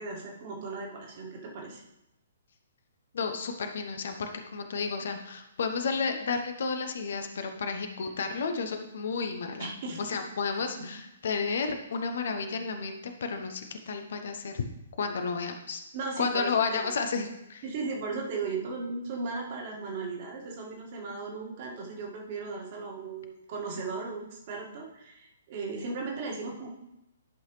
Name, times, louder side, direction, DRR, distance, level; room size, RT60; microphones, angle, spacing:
voice 1, 0.0-1.8 9.6-10.0 15.9-16.9 17.6-26.7, right 4 dB, 40° right, -1 dB, 1.9 m, -36 dB
voice 2, 3.1-9.7 10.0-14.6 15.0-15.8 16.2-17.6, left 5 dB, 55° left, 6 dB, 0.8 m, -32 dB
11.0 x 5.7 x 3.3 m, 0.85 s
figure-of-eight pair, 125°, 0 cm